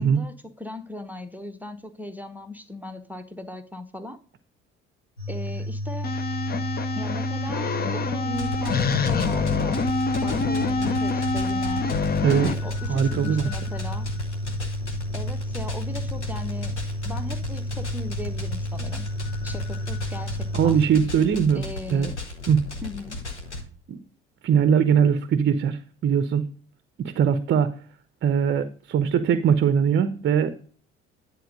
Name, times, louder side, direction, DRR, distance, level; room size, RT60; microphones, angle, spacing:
voice 1, 0.0-4.2 5.3-6.2 7.0-9.9 10.2-11.9 12.3-14.1 15.1-16.8 17.0-19.1 19.4-20.8 21.5-22.2 22.8-23.2, left 1 dB, 5° right, 0.9 m, -37 dB
scaryscape hypertensive, 5.2-20.9, equal, 65° left, 2.9 m, -31 dB
sound 1, 6.0-12.5, left 4 dB, 30° left, 0.8 m, -26 dB
sound 2, 8.3-23.6, left 2 dB, 90° left, 1.0 m, -36 dB
voice 2, 12.9-13.5 20.5-21.6 21.9-22.1 22.5-22.6 23.9-24.0 24.4-26.4 27.0-27.7 28.2-30.5, right 7 dB, 35° right, 0.7 m, -21 dB
10.5 x 4.4 x 5.2 m
figure-of-eight pair, 55°, 33 cm